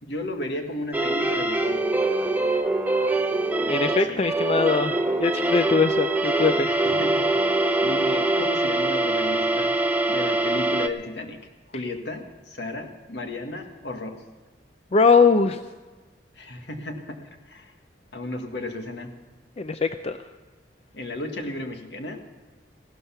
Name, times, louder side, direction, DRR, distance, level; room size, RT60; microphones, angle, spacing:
voice 1, 0.0-1.9 4.1-4.2 6.6-9.7 10.1-11.4 11.7-14.2 16.3-17.7 18.1-19.1 20.9-22.2, left 2 dB, 70° left, 4 dB, 1.8 m, -34 dB
sound 1, 0.9-10.9, right 2 dB, 10° right, 0.7 m, -24 dB
voice 2, 3.7-6.7 11.7-11.8 14.9-15.6 19.6-20.2, left 4 dB, 35° left, 9 dB, 0.5 m, -21 dB
16.0 x 12.0 x 5.7 m, 1.3 s
head